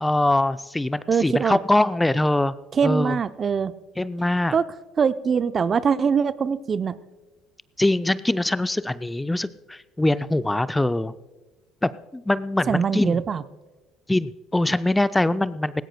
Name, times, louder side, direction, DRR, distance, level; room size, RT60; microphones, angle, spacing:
voice 1, 0.0-2.5 2.8-3.2 4.0-4.6 7.8-11.1 11.8-13.2 14.1-15.8, left 1 dB, 10° left, 15 dB, 0.4 m, -23 dB
voice 2, 1.1-1.6 2.7-3.7 4.5-4.7 5.0-7.0 12.7-13.4, right 6 dB, 40° right, 14 dB, 0.5 m, -22 dB
19.0 x 17.5 x 2.2 m, 1.2 s
hypercardioid pair, 60°, 0 cm